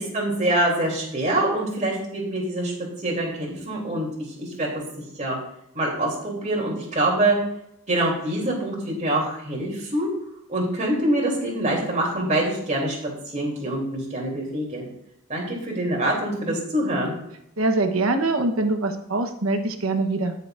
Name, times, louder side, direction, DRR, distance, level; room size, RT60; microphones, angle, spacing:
voice 1, 0.0-2.7 3.0-4.1 4.4-4.7 5.2-5.4 5.7-7.4 7.9-10.1 10.5-13.0 13.3-14.9 15.3-17.1, right 1 dB, 35° right, -2 dB, 3.0 m, -25 dB
voice 2, 17.6-20.3, right 2 dB, 75° right, 6 dB, 1.1 m, -23 dB
17.0 x 6.9 x 2.6 m, 0.77 s
head